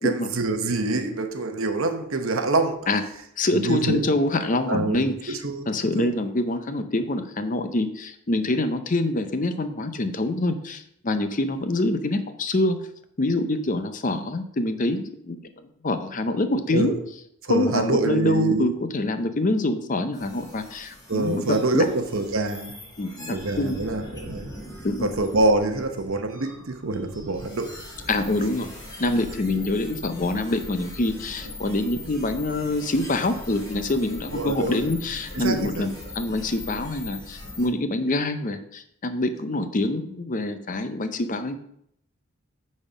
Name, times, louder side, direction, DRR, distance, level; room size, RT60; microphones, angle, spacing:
voice 1, 0.0-2.8 3.5-4.0 4.7-5.7 5.9-6.1 16.7-17.0 17.4-18.7 21.1-22.7 23.3-24.6 25.0-27.8 34.3-34.8 35.3-35.9, right 2 dB, 65° right, 6 dB, 0.9 m, -25 dB
voice 2, 3.4-5.4 5.7-12.8 13.2-15.4 15.8-16.9 17.5-21.8 23.0-23.8 24.8-25.1 28.1-28.7 29.0-41.6, left 2 dB, 35° left, 9 dB, 0.6 m, -25 dB
sound 1, 20.1-37.7, left 1 dB, 15° left, 1.6 m, -41 dB
8.9 x 4.3 x 5.0 m, 0.73 s
head